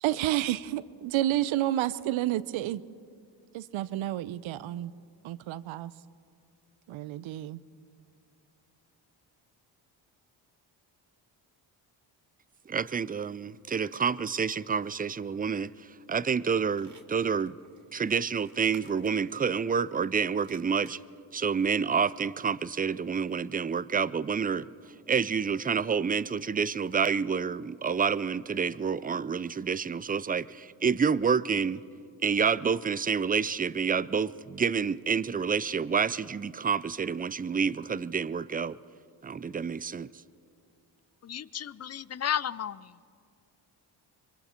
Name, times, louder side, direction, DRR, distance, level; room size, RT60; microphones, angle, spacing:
voice 1, 0.0-2.8 3.5-4.9 5.2-5.9 6.9-7.6, right 14 dB, 75° right, 0.8 m, -30 dB
voice 2, 12.7-17.5 17.9-21.0 21.3-24.7 25.1-31.8 32.2-38.8 39.2-40.1, right 6 dB, 20° right, 0.5 m, -28 dB
sound 1, 16.0-16.1 16.3-21.0 21.4-21.5, right 5 dB, 35° right, 2.5 m, -59 dB
voice 3, 41.2-42.9, left 9 dB, 35° left, 0.6 m, -33 dB
25.5 x 22.5 x 4.4 m
supercardioid pair, 65°, 48 cm